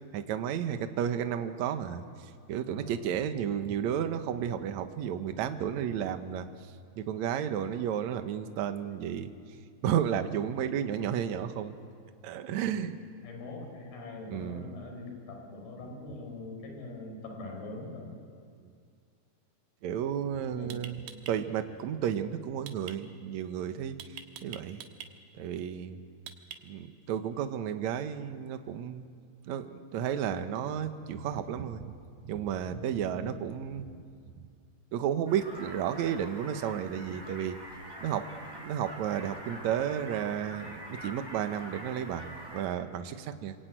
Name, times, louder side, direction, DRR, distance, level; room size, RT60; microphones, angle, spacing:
voice 1, 0.1-2.0 2.5-6.5 7.0-9.3 9.8-11.7 12.2-13.0 14.3-14.8 19.8-21.0 21.3-24.0 24.4-24.8 25.4-26.0 26.7-29.0 29.5-31.9 32.3-33.9 34.9-37.6 38.0-43.6, right 9 dB, 65° right, 8 dB, 2.0 m, -32 dB
voice 2, 2.7-3.2 12.5-12.9 13.2-18.1 20.5-20.8 33.0-33.3, left 2 dB, 80° left, 2 dB, 6.4 m, -43 dB
sound 1, 20.7-21.3 22.7-23.0 24.0-25.1 26.3-26.9, right 8 dB, 80° right, 3.2 m, -44 dB
sound 2, 35.3-42.6, right 1 dB, 5° right, 5.6 m, -45 dB
27.5 x 21.5 x 9.2 m, 2.3 s
omnidirectional pair, 4.4 m